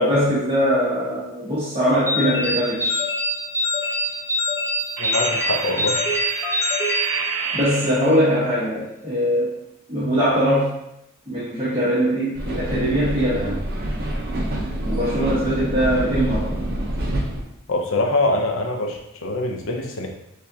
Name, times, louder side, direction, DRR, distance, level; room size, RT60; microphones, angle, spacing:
voice 1, 0.0-3.0 7.5-9.5 9.9-10.7 11.3-13.6 14.9-16.5, equal, 25° right, -11 dB, 1.3 m, -21 dB
sound 1, 2.1-7.8, left 1 dB, 15° left, 0.9 m, -25 dB
sound 2, 3.8-4.1 5.0-8.3, right 5 dB, 70° right, 0.4 m, -29 dB
voice 2, 5.0-6.0 17.7-20.1, left 2 dB, 65° left, 2 dB, 0.7 m, -24 dB
sound 3, 12.3-17.4, right 1 dB, 50° right, 0.8 m, -26 dB
6.6 x 2.4 x 2.8 m, 0.81 s
head